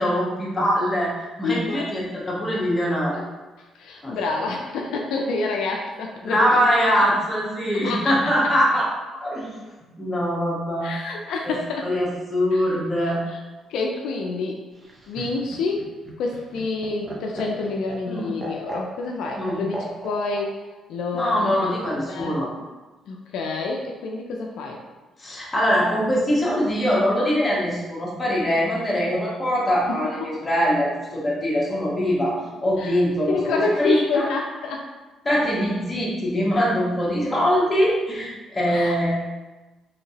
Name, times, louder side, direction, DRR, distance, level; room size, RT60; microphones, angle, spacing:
voice 1, 0.0-3.3 4.0-4.1 6.2-8.9 9.1-9.5 10.0-10.9 11.4-11.6 11.8-13.2 18.1-18.3 19.3-19.6 21.1-22.5 25.2-34.3 35.2-39.2, equal, 20° left, -5 dB, 1.1 m, -23 dB
voice 2, 1.4-1.9 2.2-2.3 3.6-7.0 7.8-8.3 10.8-11.9 12.5-12.6 13.0-13.4 13.7-14.6 15.1-15.9 16.2-20.6 20.9-21.8 22.1-22.4 23.1-24.8 29.9-30.3 32.8-33.0 33.3-34.9 38.7-39.2, left 3 dB, 85° left, 1 dB, 0.4 m, -28 dB
Laughter, 14.7-20.4 21.7-22.4, right 1 dB, 30° right, 0.7 m, -36 dB
3.5 x 2.8 x 2.8 m, 1.2 s
cardioid pair, 95°, 0 cm